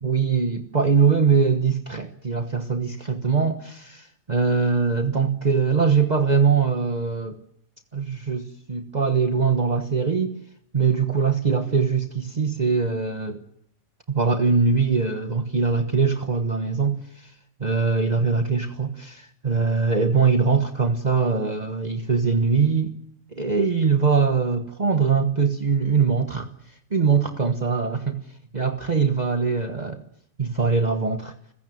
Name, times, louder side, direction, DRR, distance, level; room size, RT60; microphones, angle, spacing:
voice 1, 0.0-7.4 7.9-10.3 10.7-13.4 14.1-17.3 17.6-23.0 23.3-26.5 26.9-28.2 28.5-30.0 30.4-31.3, right 5 dB, 35° right, 1.3 m, -22 dB
29.5 x 16.0 x 9.4 m
omnidirectional pair, 1.3 m